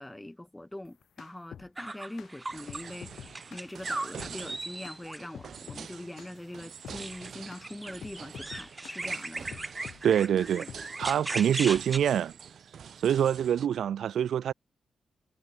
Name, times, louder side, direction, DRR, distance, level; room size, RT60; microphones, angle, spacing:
voice 1, 0.0-9.6, left 1 dB, 5° left, 2.9 m, -43 dB
sound 1, 0.9-1.7 2.2-2.3 2.7-3.7 4.2-4.4 4.8-5.0 5.3-5.9 6.2-6.4 6.8-7.0 7.5-7.7 8.0-9.0 9.5-10.3 10.7-11.2, left 9 dB, 70° left, 1.6 m, -46 dB
sound 2, 1.8-2.9 3.2-5.2 6.9-12.0, right 2 dB, 15° right, 3.0 m, -38 dB
sound 3, 2.5-13.7, right 7 dB, 55° right, 2.3 m, -46 dB
voice 2, 10.0-10.7 11.0-12.3 13.0-14.5, right 9 dB, 75° right, 0.6 m, -25 dB
wide cardioid pair, 180°, 0 cm